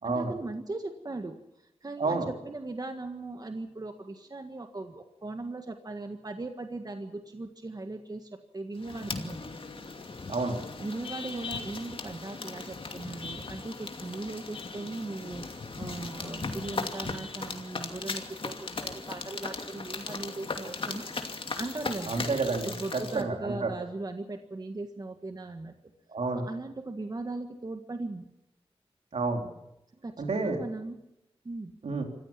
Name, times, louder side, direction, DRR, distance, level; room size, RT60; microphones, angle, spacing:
voice 1, 0.0-9.4 10.8-21.1 21.6-22.1 22.6-25.7 26.3-28.3 29.9-31.0 31.4-31.7, right 2 dB, 40° right, 6 dB, 1.6 m, -38 dB
sound 1, 8.8-23.2, left 3 dB, 55° left, 2.6 m, -38 dB
voice 2, 22.1-23.7 26.1-26.4 29.1-29.5 30.2-30.6 31.8-32.0, right 3 dB, 80° right, 3 dB, 3.9 m, -29 dB
26.0 x 15.0 x 7.3 m, 0.88 s
wide cardioid pair, 95°, 11 cm